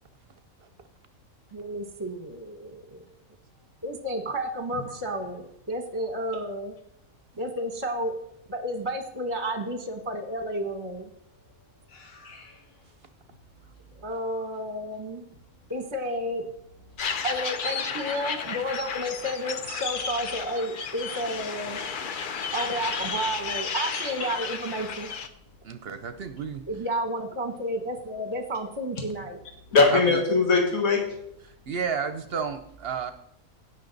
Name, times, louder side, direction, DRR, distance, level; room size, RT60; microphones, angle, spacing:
voice 1, 1.5-3.0 3.8-6.7 7.4-8.1 8.5-11.1 14.0-15.2 15.7-16.4 17.2-21.8 22.5-25.1 26.7-29.4, equal, 25° right, 6 dB, 0.9 m, -31 dB
voice 2, 11.9-12.5 23.9-24.3 29.7-31.0, left 4 dB, 85° left, 1 dB, 2.0 m, -23 dB
sound 1, 17.0-25.3, left 6 dB, 50° left, 0.7 m, -33 dB
voice 3, 25.6-26.6 29.9-30.2 31.7-33.1, right 6 dB, 55° right, 10 dB, 0.7 m, -31 dB
17.0 x 5.8 x 4.0 m, 0.76 s
omnidirectional pair, 1.4 m